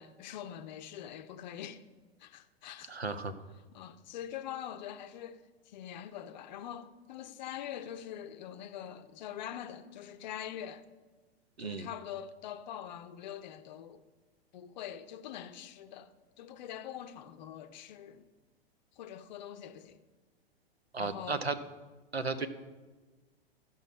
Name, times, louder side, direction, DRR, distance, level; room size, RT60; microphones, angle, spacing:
voice 1, 0.0-1.8 2.2-2.9 3.7-10.9 11.6-14.0 14.5-18.3 19.0-20.0 21.0-21.4, left 10 dB, 45° left, 0.6 m, -44 dB
voice 2, 2.9-3.3 11.6-11.9 20.9-21.6 22.1-22.5, right 4 dB, 85° right, 0.8 m, -34 dB
13.5 x 5.7 x 4.7 m
figure-of-eight pair, 100°, 31 cm